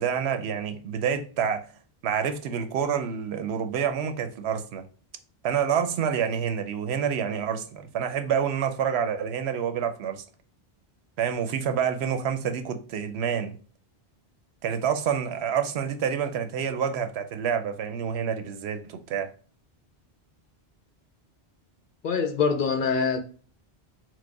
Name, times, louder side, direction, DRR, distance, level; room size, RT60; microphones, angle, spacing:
voice 1, 0.0-1.7 2.0-4.9 5.4-10.2 11.2-13.5 14.6-19.3, right 7 dB, 80° right, 0.9 m, -28 dB
voice 2, 22.0-23.2, left 5 dB, 60° left, 0.6 m, -24 dB
4.7 x 2.1 x 4.6 m
omnidirectional pair, 1.1 m